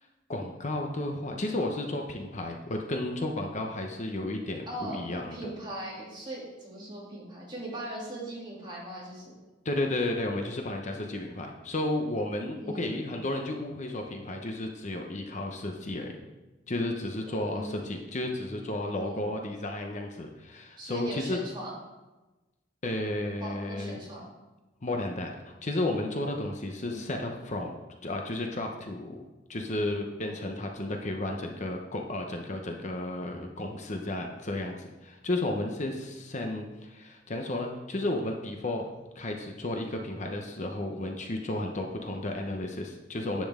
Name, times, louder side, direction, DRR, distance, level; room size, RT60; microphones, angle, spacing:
voice 1, 0.3-5.4 9.6-16.2 16.7-21.4 22.8-24.0 24.8-27.7 28.0-29.2 29.5-38.9 39.1-43.5, left 1 dB, 40° left, 3 dB, 0.8 m, -33 dB
voice 2, 4.7-9.3 12.6-13.2 17.2-17.9 18.9-19.3 20.8-21.7 23.4-24.2 26.8-27.1, right 1 dB, 25° right, -5 dB, 3.0 m, -40 dB
10.5 x 7.7 x 3.7 m, 1.1 s
head